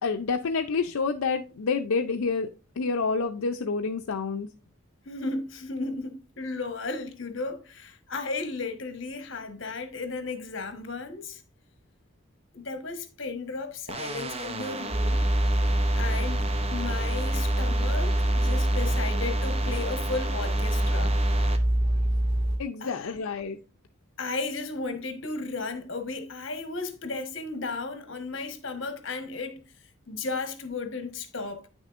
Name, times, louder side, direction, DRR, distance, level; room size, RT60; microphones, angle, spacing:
voice 1, 0.0-2.5 2.8-4.5 22.6-23.6, left 4 dB, 85° left, 0.5 m, -28 dB
voice 2, 5.0-11.4 12.5-15.2 15.9-21.1 22.8-23.2 24.2-29.7 30.1-31.6, left 3 dB, 60° left, 1.2 m, -34 dB
sound 1, 13.9-21.6, right 2 dB, 30° right, 0.7 m, -35 dB
sound 2, 14.9-22.6, right 1 dB, 50° right, 1.9 m, -25 dB
9.3 x 6.3 x 2.5 m
head